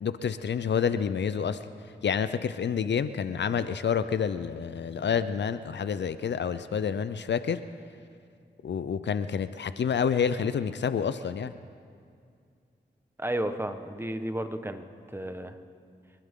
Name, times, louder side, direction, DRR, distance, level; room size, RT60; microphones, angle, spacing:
voice 1, 0.0-1.6 2.0-7.6 8.6-11.5, left 7 dB, 70° left, 12 dB, 0.6 m, -28 dB
voice 2, 13.2-15.6, right 1 dB, 10° right, 7 dB, 1.3 m, -33 dB
28.5 x 11.5 x 3.8 m, 2.3 s
cardioid pair, 45°, 19 cm